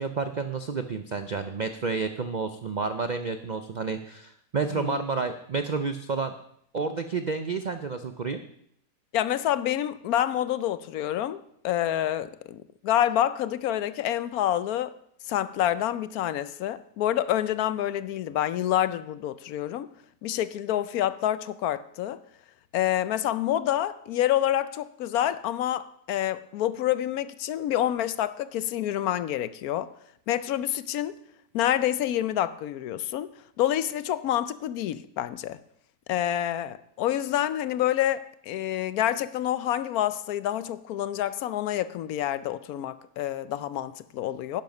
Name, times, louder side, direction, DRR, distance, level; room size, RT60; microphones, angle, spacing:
voice 1, 0.0-6.3 6.7-8.4, right 4 dB, 60° right, 0.4 m, -30 dB
voice 2, 4.7-5.0 9.1-14.9 15.3-19.9 20.2-22.2 22.7-29.9 30.3-31.2 31.5-33.3 33.6-35.6 36.1-44.6, left 12 dB, 75° left, 1.0 m, -27 dB
11.0 x 10.5 x 5.3 m
omnidirectional pair, 1.7 m